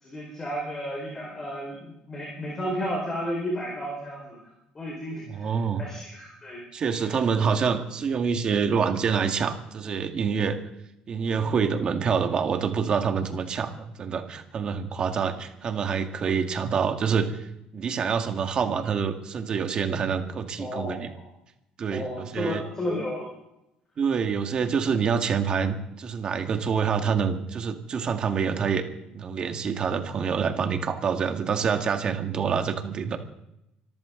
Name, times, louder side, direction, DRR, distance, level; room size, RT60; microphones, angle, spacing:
voice 1, 0.0-4.4 4.7-7.1 11.4-11.7 20.6-21.3 21.9-23.3, equal, 20° left, -1 dB, 4.8 m, -33 dB
voice 2, 5.3-5.9 6.7-10.6 11.1-17.5 17.7-21.1 21.8-22.6 24.0-28.8 29.1-33.2, right 6 dB, 35° right, 6 dB, 1.9 m, -26 dB
25.0 x 14.0 x 3.9 m, 0.83 s
cardioid pair, 155°, 3 cm